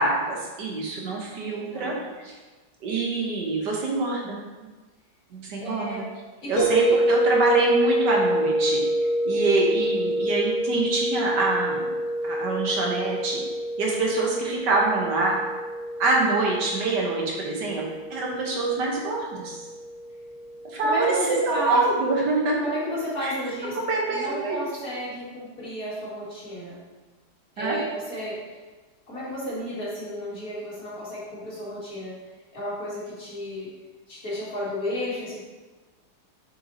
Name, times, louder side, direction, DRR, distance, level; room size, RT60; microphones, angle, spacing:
voice 1, 0.0-1.9 2.2-2.3 2.8-4.4 5.3-6.0 6.5-8.8 9.2-11.8 12.2-13.4 13.8-15.4 16.0-17.8 18.1-19.7 20.6-21.1 21.5-22.6 23.2-23.3 23.6-24.6 27.6-27.8, right 3 dB, 65° right, -2 dB, 1.6 m, -25 dB
voice 2, 1.5-1.9 5.6-6.0 6.4-6.9 20.8-21.8 22.6-23.8 24.1-26.8 27.6-28.4 29.1-32.1 32.5-33.7 34.1-35.4, equal, 50° left, -8 dB, 2.5 m, -32 dB
sound 1, 6.6-21.5, equal, 80° left, 1.7 m, -27 dB
7.6 x 6.2 x 2.8 m, 1.3 s
omnidirectional pair, 2.0 m